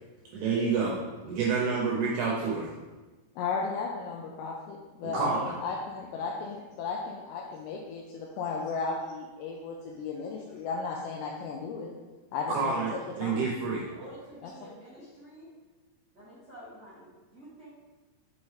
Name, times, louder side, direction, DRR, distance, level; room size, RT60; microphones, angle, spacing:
voice 1, 0.3-1.0 1.3-2.7 5.1-5.5 12.5-12.9 13.2-13.9, right 5 dB, 80° right, -4 dB, 2.4 m, -28 dB
voice 2, 3.4-11.9 12.3-13.5 14.4-14.5, left 4 dB, 85° left, 0 dB, 2.5 m, -35 dB
voice 3, 13.8-15.5 16.1-17.7, right 1 dB, 50° right, -12 dB, 1.2 m, -49 dB
6.0 x 5.5 x 3.2 m, 1.2 s
omnidirectional pair, 5.5 m